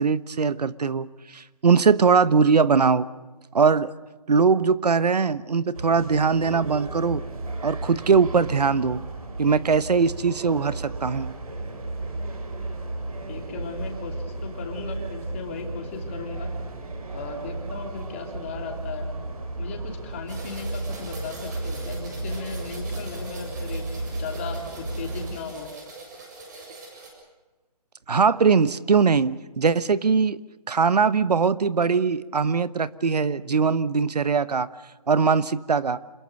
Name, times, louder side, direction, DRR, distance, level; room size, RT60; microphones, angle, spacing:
voice 1, 0.0-3.1 3.5-3.9 4.3-7.2 7.6-9.0 9.4-11.3 28.1-30.4 30.7-34.7 35.1-36.0, right 5 dB, 90° right, 16 dB, 1.2 m, -21 dB
sound 1, 5.8-25.4, right 2 dB, 65° right, 4.8 m, -34 dB
voice 2, 13.3-14.2 14.4-16.5 17.1-19.1 19.6-23.9 24.2-25.7, left 5 dB, 20° left, 3 dB, 2.9 m, -36 dB
sound 2, 20.3-27.1, right 3 dB, 30° right, 7.2 m, -43 dB
27.5 x 22.0 x 6.5 m, 1.2 s
hypercardioid pair, 175°, 20 cm